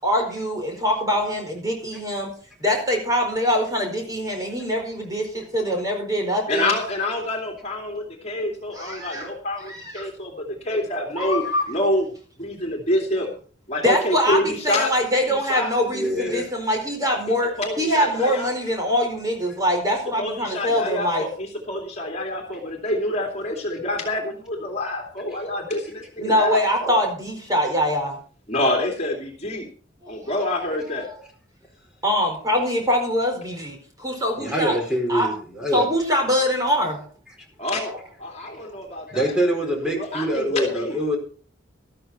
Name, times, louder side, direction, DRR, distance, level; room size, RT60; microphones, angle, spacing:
voice 1, 0.0-2.3 2.6-6.7 8.7-9.3 9.7-10.1 11.2-11.6 13.8-21.2 26.2-28.2 30.0-30.2 32.0-34.8 35.1-35.3 35.7-37.0, equal, 20° right, 2 dB, 4.7 m, -23 dB
voice 2, 6.5-11.4 11.7-12.1 12.4-13.3 13.7-14.9 15.3-15.7 17.3-18.5 19.9-26.9 28.5-29.7 30.1-31.1 37.6-37.9 38.2-41.0, left 1 dB, 35° left, 1 dB, 2.6 m, -27 dB
voice 3, 15.8-16.5 34.4-35.9 39.1-41.2, equal, 5° right, 0 dB, 4.5 m, -24 dB
13.5 x 13.0 x 4.3 m, 0.42 s
head